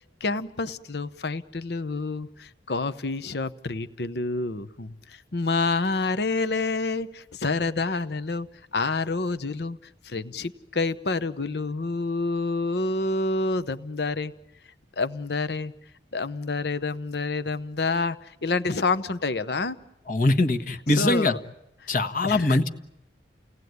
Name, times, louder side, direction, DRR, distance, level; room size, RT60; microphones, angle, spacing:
voice 1, 0.2-8.5 8.7-9.8 10.0-14.3 15.0-15.7 16.1-19.8 20.9-21.4 22.2-22.7, left 3 dB, 65° left, 13 dB, 0.9 m, -28 dB
voice 2, 20.1-21.3 21.9-22.7, left 2 dB, 50° left, 7 dB, 1.4 m, -22 dB
29.5 x 18.5 x 9.5 m, 0.87 s
head